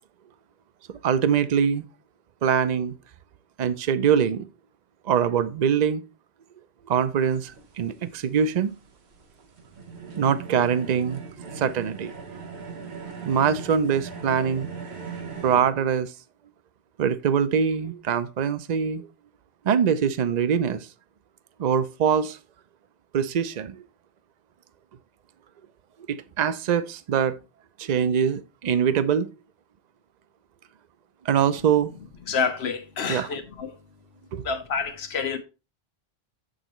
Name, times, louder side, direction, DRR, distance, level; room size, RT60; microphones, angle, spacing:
voice 1, 0.9-1.8 2.4-2.9 3.6-4.4 5.1-6.0 6.9-8.7 10.2-11.2 11.6-12.1 13.3-14.7 15.4-16.1 17.0-19.1 19.6-20.9 21.6-22.4 23.1-23.8 26.1-27.4 27.8-29.3 31.2-31.9 33.1-33.3 34.3-34.4, right 7 dB, 50° right, 0.6 m, -23 dB
sound 1, 7.2-15.6, right 5 dB, 90° right, 1.4 m, -39 dB
voice 2, 32.3-33.8 34.4-35.4, left 5 dB, 85° left, 1.2 m, -28 dB
7.8 x 6.4 x 3.0 m
omnidirectional pair, 1.1 m